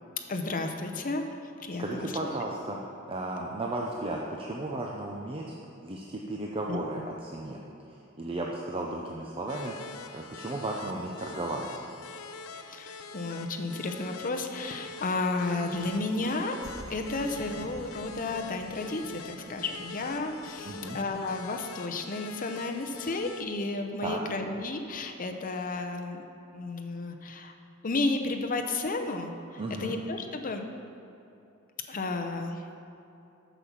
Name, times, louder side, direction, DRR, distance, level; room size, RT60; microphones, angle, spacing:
voice 1, 0.3-1.3 1.6-2.1 6.7-7.0 12.7-16.6 16.9-26.2 26.5-27.5 27.8-30.6 31.9-32.6, left 2 dB, 40° left, 5 dB, 0.7 m, -32 dB
voice 2, 1.8-2.8 3.1-5.6 5.8-7.6 8.2-11.8 20.7-21.0 24.0-24.2 29.6-29.9, right 2 dB, 25° right, -1 dB, 0.6 m, -34 dB
sound 1, 9.5-23.4, left 4 dB, 75° left, 0.5 m, -44 dB
sound 2, 10.5-13.5 16.6-23.9, equal, 85° right, 1.5 m, -51 dB
8.4 x 7.0 x 5.8 m, 2.8 s
head